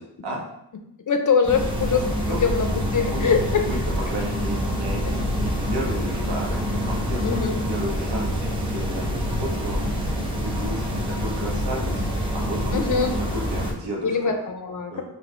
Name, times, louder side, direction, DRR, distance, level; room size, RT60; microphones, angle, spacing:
voice 1, 1.1-3.7 7.2-7.6 12.7-13.1 14.0-15.0, left 5 dB, 50° left, 5 dB, 0.6 m, -23 dB
sound 1, 1.4-13.7, equal, 10° right, 0.9 m, -26 dB
voice 2, 2.8-3.8 4.1-9.8 10.3-12.0 12.3-12.8 13.3-14.2 14.9-15.0, equal, 90° right, -2 dB, 1.2 m, -33 dB
4.3 x 2.6 x 4.2 m, 0.79 s
wide cardioid pair, 115°, 41 cm